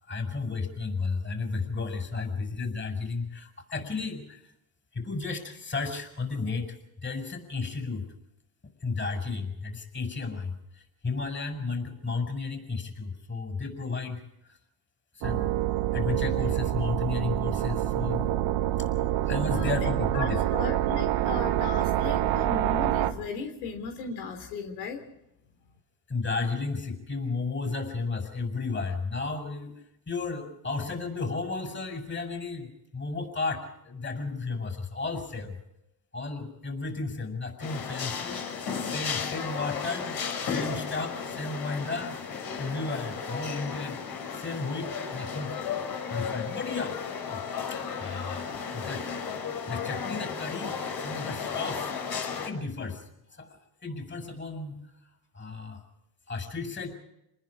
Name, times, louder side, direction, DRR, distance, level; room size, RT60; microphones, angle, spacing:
voice 1, 0.0-4.4 4.9-8.1 8.8-14.2 14.5-14.6 15.1-15.5 15.9-18.3 19.3-20.4 26.1-35.6 36.1-38.4 38.8-42.2 42.6-44.0 44.3-45.5 46.1-47.0 47.3-47.4 47.7-49.0 49.7-51.9 52.4-53.0 53.3-54.8 55.3-55.8 56.3-57.0, left 4 dB, 25° left, 6 dB, 6.3 m, -33 dB
sound 1, 15.2-23.1, right 13 dB, 65° right, 1.8 m, -27 dB
voice 2, 19.5-19.9 20.1-25.0, left 4 dB, 75° left, 4 dB, 3.5 m, -36 dB
sound 2, 37.6-52.5, left 6 dB, 50° left, 5.8 m, -34 dB
28.0 x 20.5 x 4.9 m, 0.81 s
supercardioid pair, 90°, 47 cm